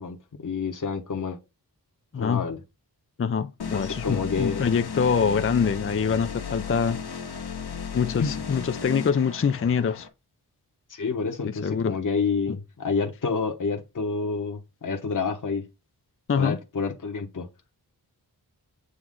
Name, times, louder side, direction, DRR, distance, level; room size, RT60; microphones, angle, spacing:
voice 1, 0.0-1.4 2.1-2.6 3.7-4.7 8.2-8.4 10.9-15.7 16.4-17.5, left 5 dB, 50° left, 1.2 m, -29 dB
voice 2, 2.1-2.4 3.2-7.0 7.9-10.1 11.4-12.0 16.3-16.6, left 6 dB, 35° left, 0.5 m, -25 dB
sound 1, 3.6-10.1, left 6 dB, 75° left, 1.2 m, -35 dB
8.0 x 3.2 x 3.7 m
wide cardioid pair, 90°, 39 cm